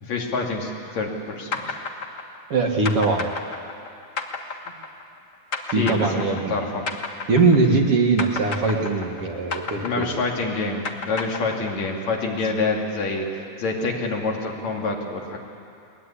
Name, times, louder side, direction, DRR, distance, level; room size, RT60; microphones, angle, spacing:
voice 1, 0.0-1.7 5.7-7.0 9.8-13.3 13.6-15.4, left 3 dB, 65° left, 0 dB, 3.7 m, -27 dB
sound 1, 1.5-7.9 8.2-12.0, left 4 dB, 40° left, 1.1 m, -32 dB
voice 2, 2.5-3.3 5.7-6.6 7.3-10.1, right 3 dB, 55° right, 2 dB, 2.6 m, -21 dB
22.0 x 21.0 x 9.9 m, 2.5 s
omnidirectional pair, 3.4 m